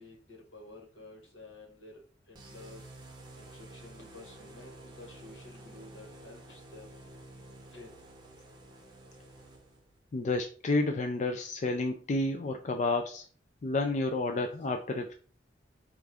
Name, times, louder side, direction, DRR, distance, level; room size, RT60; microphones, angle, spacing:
voice 1, 0.0-2.9 3.3-6.9 7.7-7.9 14.3-14.5, left 2 dB, 85° left, 0 dB, 1.5 m, -51 dB
sound 1, 2.3-10.0, right 2 dB, 25° right, 0.7 m, -51 dB
voice 2, 10.1-13.3 13.6-15.1, left 2 dB, 40° left, 5 dB, 0.3 m, -30 dB
4.5 x 2.4 x 3.4 m, 0.40 s
head